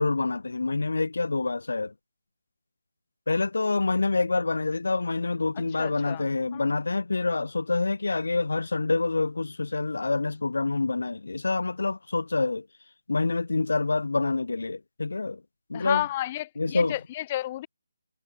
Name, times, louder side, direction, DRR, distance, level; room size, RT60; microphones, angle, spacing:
voice 1, 0.0-1.9 3.3-12.7 13.1-15.4 15.7-16.0 16.6-16.9, left 3 dB, 65° left, 6.0 m, -27 dB
voice 2, 5.8-6.7 15.7-17.7, left 14 dB, 25° left, 5.3 m, -32 dB
figure-of-eight pair, 150°, 0 cm